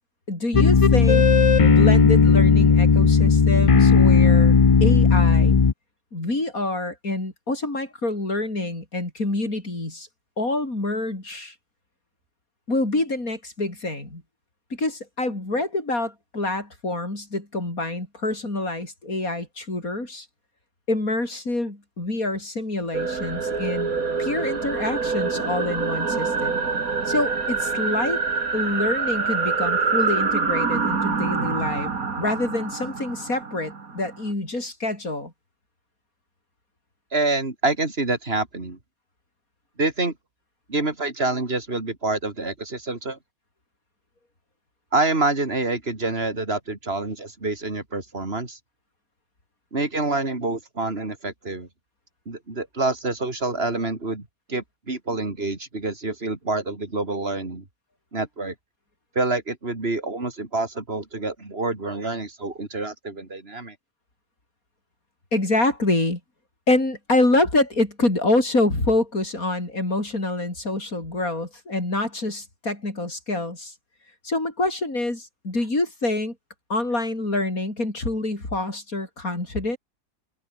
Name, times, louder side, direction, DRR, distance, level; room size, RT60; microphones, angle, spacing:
voice 1, 0.3-1.2 1.6-5.7 6.1-10.1 10.4-11.6 12.7-14.2 14.7-20.3 20.9-23.9 24.2-26.6 27.1-28.2 28.5-31.9 32.2-35.3 65.3-66.2 66.7-73.7 74.2-76.4 76.7-79.8, left 2 dB, 85° left, 6.9 m, -26 dB
sound 1, 0.5-5.7, left 5 dB, 35° left, 0.6 m, -15 dB
sound 2, 22.9-34.3, right 5 dB, 85° right, 2.9 m, -26 dB
voice 2, 37.1-38.8 39.8-40.1 40.7-43.2 44.9-48.6 49.7-51.7 52.3-57.6 58.1-58.5 59.2-63.8, right 2 dB, 45° right, 3.9 m, -27 dB
omnidirectional pair, 1.5 m